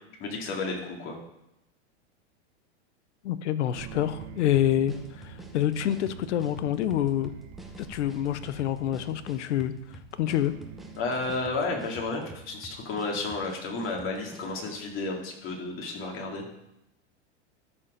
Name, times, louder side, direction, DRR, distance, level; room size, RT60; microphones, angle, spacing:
voice 1, 0.2-1.2 11.0-16.5, left 3 dB, 35° left, 0 dB, 2.4 m, -32 dB
voice 2, 3.2-7.3 7.9-9.7 10.1-10.5, left 11 dB, 80° left, 14 dB, 0.8 m, -27 dB
sound 1, 3.7-15.1, right 7 dB, 45° right, 0.9 m, -48 dB
sound 2, 4.2-14.9, equal, ahead, 0.9 m, -48 dB
13.0 x 4.4 x 5.1 m, 0.85 s
hypercardioid pair, 125°, 35 cm